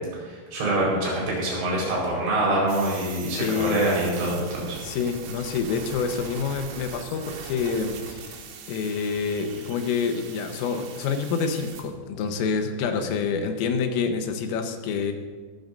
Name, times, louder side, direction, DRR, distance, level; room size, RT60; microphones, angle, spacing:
voice 1, 0.2-4.8, right 1 dB, 65° right, -4 dB, 6.8 m, -25 dB
sound 1, 2.7-11.8, right 6 dB, 85° right, 4.1 m, -41 dB
voice 2, 3.4-3.9 4.8-8.4 8.7-15.1, left 5 dB, 85° left, 5 dB, 3.7 m, -27 dB
23.0 x 14.0 x 2.6 m, 1.4 s
omnidirectional pair, 5.8 m